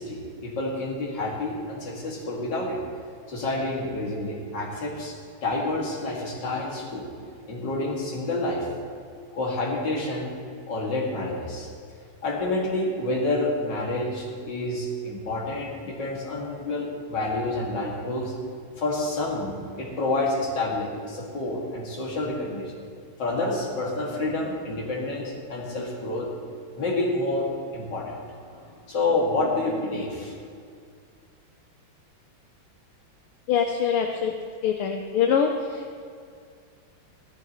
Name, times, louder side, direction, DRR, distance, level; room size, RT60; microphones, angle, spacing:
voice 1, 0.0-2.8 3.3-7.1 7.5-8.7 9.3-10.4 10.7-11.7 12.2-18.4 18.8-22.7 23.2-26.5 26.7-30.3, left 2 dB, 55° left, -2 dB, 2.7 m, -28 dB
voice 2, 33.5-34.3 34.6-36.0, left 7 dB, 80° left, 3 dB, 1.6 m, -24 dB
16.5 x 13.5 x 3.1 m, 2.3 s
omnidirectional pair, 2.4 m